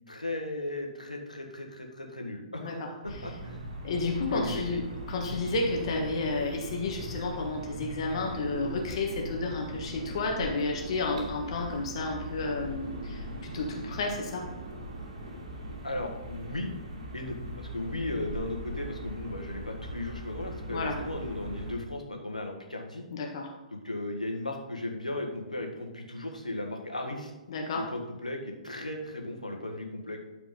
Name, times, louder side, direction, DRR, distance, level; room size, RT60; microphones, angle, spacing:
voice 1, 0.1-2.9 3.2-3.6 4.3-4.8 15.8-16.7 17.1-23.0 23.7-27.3 27.7-30.2, left 1 dB, 85° left, 2 dB, 1.7 m, -36 dB
voice 2, 2.6-2.9 3.8-14.5 20.7-21.0 23.1-23.5 27.5-27.9, left 3 dB, 50° left, 1 dB, 1.5 m, -31 dB
sound 1, 3.0-21.7, right 1 dB, 60° right, 2.6 m, -40 dB
12.5 x 4.9 x 3.9 m, 1.1 s
figure-of-eight pair, 120°, 4 cm